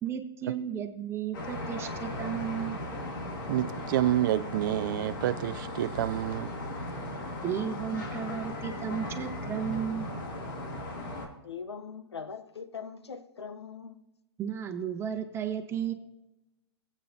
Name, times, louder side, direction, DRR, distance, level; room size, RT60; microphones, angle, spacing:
voice 1, 0.0-2.8 7.4-10.1 14.4-15.9, right 8 dB, 20° right, 1.2 m, -34 dB
sound 1, 1.3-11.3, left 1 dB, 50° left, 2.6 m, -37 dB
voice 2, 3.5-6.5, right 12 dB, 50° right, 0.4 m, -28 dB
voice 3, 11.4-14.0, left 6 dB, 80° left, 0.9 m, -41 dB
19.0 x 8.7 x 2.7 m
hypercardioid pair, 120°, 14 cm